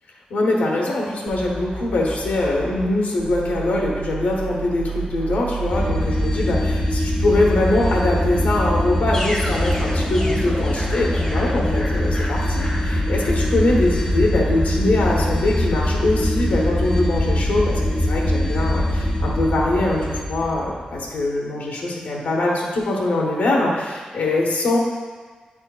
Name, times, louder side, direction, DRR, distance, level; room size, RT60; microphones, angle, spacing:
voice 1, 0.3-24.8, left 2 dB, 90° left, -3 dB, 1.1 m, -22 dB
sound 1, 1.3-2.9 3.2-6.3, right 5 dB, 85° right, 1.2 m, -32 dB
sound 2, 5.7-21.1, left 1 dB, 20° left, 0.9 m, -22 dB
9.4 x 4.3 x 2.4 m, 1.4 s
wide cardioid pair, 125°, 3 cm